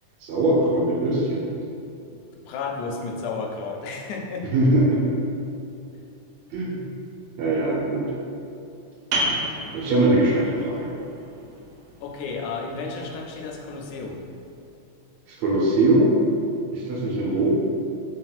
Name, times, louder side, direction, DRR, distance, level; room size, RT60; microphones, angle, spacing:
voice 1, 0.2-1.4 4.5-5.0 6.5-6.9 7.4-8.1 9.7-10.9 15.3-16.2 16.7-17.6, right 2 dB, 70° right, -5 dB, 1.8 m, -21 dB
voice 2, 2.5-4.5 12.0-14.2, left 4 dB, 85° left, 0 dB, 2.0 m, -32 dB
sound 1, 9.1-14.5, right 1 dB, 90° right, 2.1 m, -33 dB
4.3 x 4.2 x 2.3 m, 2.7 s
omnidirectional pair, 3.5 m